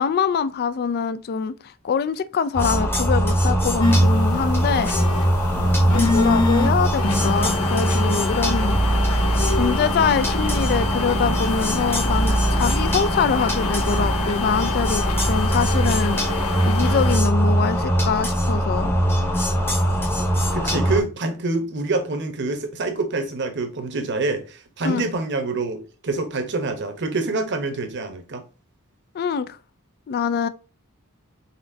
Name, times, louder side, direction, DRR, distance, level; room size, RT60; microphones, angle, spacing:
voice 1, 0.0-4.9 5.9-8.8 9.5-16.2 16.6-18.9 24.8-25.0 29.1-29.5 30.1-30.5, left 6 dB, 45° left, 0.3 m, -24 dB
sound 1, 2.5-21.0, equal, 10° left, 0.8 m, -21 dB
sound 2, 3.8-17.2, left 3 dB, 80° left, 0.7 m, -27 dB
voice 2, 5.5-6.0 20.5-28.4, right 3 dB, 55° right, 0.9 m, -26 dB
4.2 x 4.0 x 2.6 m
head